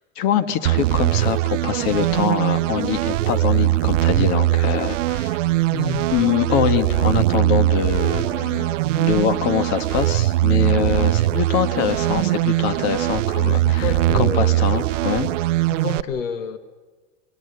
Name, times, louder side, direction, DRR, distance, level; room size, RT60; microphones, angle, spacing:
voice 1, 0.1-5.4 6.1-8.7 8.9-13.9 14.2-15.3, left 9 dB, 50° left, 11 dB, 1.6 m, -24 dB
sound 1, 0.7-16.0, right 16 dB, 80° right, 0.6 m, -21 dB
voice 2, 5.7-6.1 6.6-7.2 8.5-8.8 13.4-14.6 15.7-16.6, left 7 dB, 85° left, 11 dB, 1.3 m, -30 dB
26.5 x 21.5 x 6.8 m, 1.3 s
hypercardioid pair, 120°, 37 cm